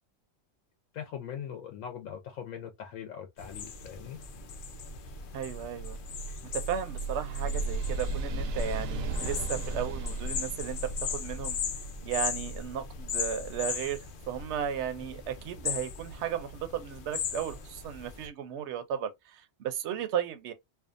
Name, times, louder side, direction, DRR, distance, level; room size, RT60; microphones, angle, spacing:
voice 1, 0.9-4.2, left 8 dB, 80° left, 1.0 m, -41 dB
sound 1, 3.4-18.3, left 7 dB, 60° left, 0.5 m, -39 dB
sound 2, 4.4-15.1, right 2 dB, 90° right, 1.0 m, -37 dB
voice 2, 5.3-6.0 6.5-11.6 12.0-20.5, right 9 dB, 65° right, 0.8 m, -35 dB
2.6 x 2.3 x 2.4 m
omnidirectional pair, 1.4 m